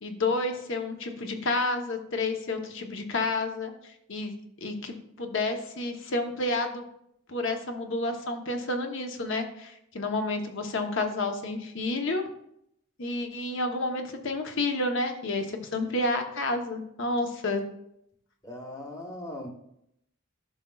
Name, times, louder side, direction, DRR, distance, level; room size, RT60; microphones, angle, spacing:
voice 1, 0.0-4.3 4.6-6.8 7.3-12.2 13.0-17.6, left 2 dB, 60° left, 5 dB, 0.9 m, -30 dB
voice 2, 18.4-19.5, left 1 dB, 15° left, 1 dB, 1.0 m, -39 dB
11.5 x 5.7 x 2.3 m, 0.76 s
head